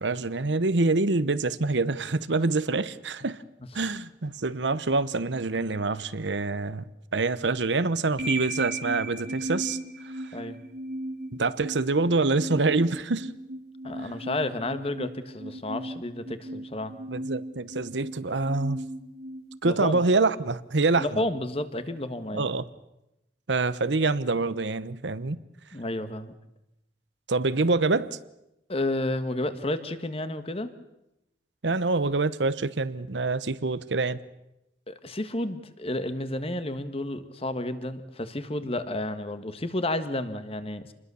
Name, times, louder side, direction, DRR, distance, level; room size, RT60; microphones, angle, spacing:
voice 1, 0.0-3.4 3.7-6.8 7.1-9.8 11.4-13.3 14.0-14.1 17.1-18.8 19.6-21.2 22.3-22.6 23.5-25.4 27.3-28.2 31.6-34.2, right 3 dB, 85° right, 1.0 m, -26 dB
sound 1, 8.2-20.2, right 1 dB, 65° right, 2.5 m, -37 dB
voice 2, 13.8-16.9 19.7-20.0 21.0-22.5 25.7-26.3 28.7-30.7 34.9-40.9, left 1 dB, 35° left, 1.5 m, -31 dB
27.5 x 21.0 x 7.0 m
head